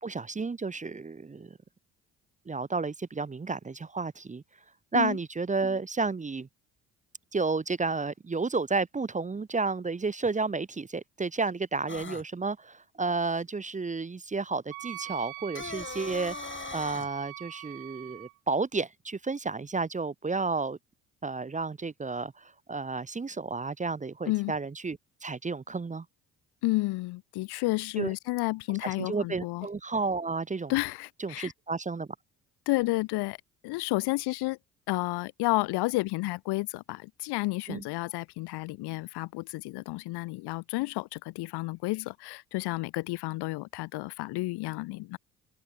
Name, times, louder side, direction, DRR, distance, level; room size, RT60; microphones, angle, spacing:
voice 1, 0.0-1.6 2.5-4.4 4.9-6.5 7.3-16.4 16.7-20.8 21.2-26.0 28.0-28.1 28.7-30.7 31.2-32.1 37.7-37.8, right 4 dB, 20° right, 0.8 m, -31 dB
sound 1, 11.9-12.2 15.4-17.1, left 4 dB, 30° left, 4.7 m, -39 dB
Wind instrument woodwind instrument, 14.7-18.3, right 25 dB, 85° right, 3.9 m, -43 dB
voice 2, 26.6-29.7 30.7-31.5 32.7-33.4 33.6-34.6 34.9-45.2, left 21 dB, 70° left, 1.2 m, -31 dB
open air
hypercardioid pair, 55°, 41 cm